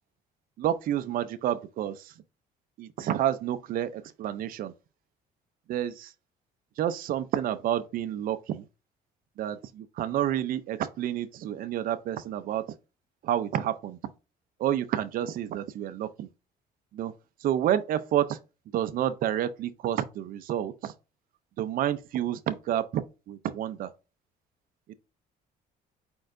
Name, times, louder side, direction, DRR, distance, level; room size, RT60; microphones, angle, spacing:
voice 1, 0.6-2.1 2.8-4.7 5.7-6.1 6.8-8.6 9.4-12.7 13.2-14.0 14.6-16.3 16.9-17.1 17.4-18.4 18.7-20.9 21.6-23.9, right 11 dB, 60° right, 0.5 m, -29 dB
4.6 x 4.4 x 2.5 m
cardioid pair, 110°, 17 cm